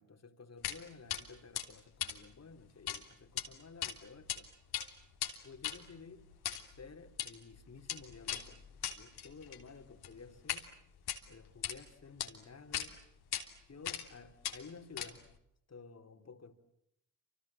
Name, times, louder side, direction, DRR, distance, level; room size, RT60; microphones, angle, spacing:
voice 1, 0.0-4.5 5.4-6.3 6.8-10.7 11.3-13.0 13.7-15.3 15.7-16.5, left 4 dB, 40° left, 3.8 m, -53 dB
sound 1, 0.6-0.8 1.1-1.2 1.5-3.0 3.3-3.4 3.8-4.4 4.6-10.6 11.0-11.8 12.2-12.3 12.7-12.9 13.3-13.4 13.8-14.1 14.4-15.4, left 10 dB, 70° left, 3.3 m, -39 dB
28.5 x 26.0 x 7.6 m
supercardioid pair, 55°, 40 cm